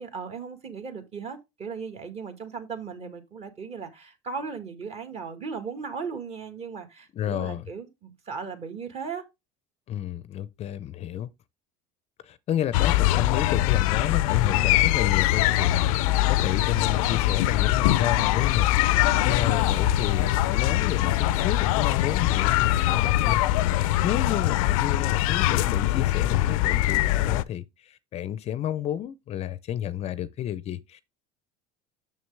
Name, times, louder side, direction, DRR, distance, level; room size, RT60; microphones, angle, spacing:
voice 1, 0.0-9.2, right 5 dB, 35° right, 1.8 m, -37 dB
voice 2, 7.1-7.7 9.9-11.3 12.2-23.4 23.7-31.0, left 11 dB, 40° left, 0.5 m, -31 dB
sound 1, 12.7-27.4, left 15 dB, 85° left, 0.5 m, -22 dB
6.7 x 6.4 x 3.3 m
supercardioid pair, 120°, 17 cm